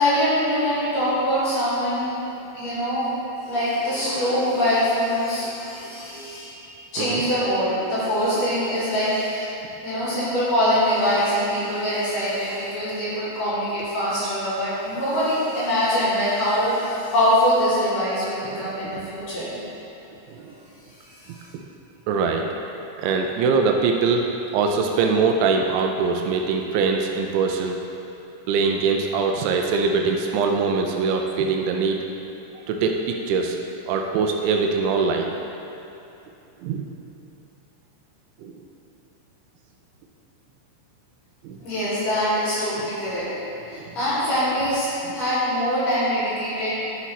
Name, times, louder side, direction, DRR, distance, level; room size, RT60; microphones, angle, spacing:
voice 1, 0.0-3.1 3.4-6.7 6.9-9.5 9.8-19.6 21.0-21.4 41.6-43.3 43.7-46.8, equal, 50° left, -10 dB, 3.3 m, -23 dB
voice 2, 22.1-22.5 23.0-24.3 24.5-27.8 28.5-32.0 32.7-33.6 33.9-35.3 36.6-36.8 38.4-38.5 41.4-41.6 43.7-43.9, right 4 dB, 80° right, 3 dB, 2.9 m, -22 dB
11.5 x 6.3 x 4.1 m, 2.9 s
omnidirectional pair, 5.4 m